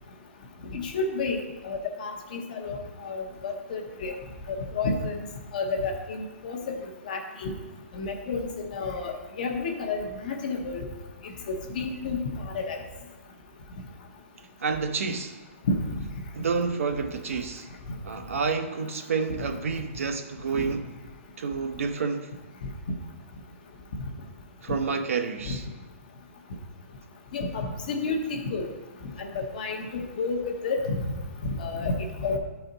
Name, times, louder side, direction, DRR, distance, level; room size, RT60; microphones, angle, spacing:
voice 1, 0.7-1.4 1.6-4.1 4.5-5.1 5.5-6.6 7.1-7.5 7.9-10.8 11.5-12.8 15.7-15.8 25.5-25.6 27.3-28.7 29.2-31.1 31.6-32.4, left 3 dB, 40° left, 3 dB, 0.8 m, -30 dB
voice 2, 14.6-15.4 16.3-17.7 18.0-20.9 21.4-22.3 24.6-25.7, right 5 dB, 80° right, 6 dB, 0.9 m, -29 dB
11.0 x 4.2 x 3.9 m, 1.2 s
hypercardioid pair, 180°, 7 cm